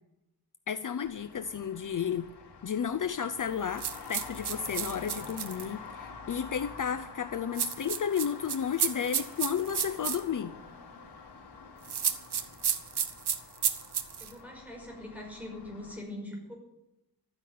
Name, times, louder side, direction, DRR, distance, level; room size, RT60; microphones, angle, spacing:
voice 1, 0.7-2.3 2.6-10.5, left 8 dB, 55° left, 10 dB, 0.6 m, -32 dB
Traffic noise roadway noise, 1.0-16.0, left 5 dB, 90° left, 3.0 m, -47 dB
sound 1, 3.8-5.7 7.6-10.2 11.8-14.3, right 8 dB, 85° right, 1.2 m, -31 dB
voice 2, 14.2-16.6, left 1 dB, 5° right, -1 dB, 5.6 m, -42 dB
13.5 x 9.8 x 9.3 m, 0.89 s
wide cardioid pair, 135°, 39 cm